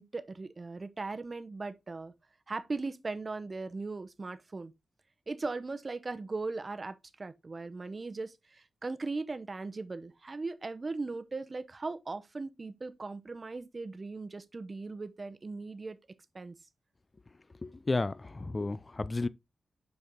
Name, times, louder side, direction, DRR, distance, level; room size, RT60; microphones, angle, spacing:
voice 1, 0.0-2.1 2.5-4.7 5.3-16.0 16.3-16.5, right 3 dB, 40° right, 0.8 m, -38 dB
voice 2, 17.6-19.3, left 3 dB, 35° left, 0.5 m, -32 dB
6.6 x 4.6 x 3.6 m
cardioid pair, 65°, 0 cm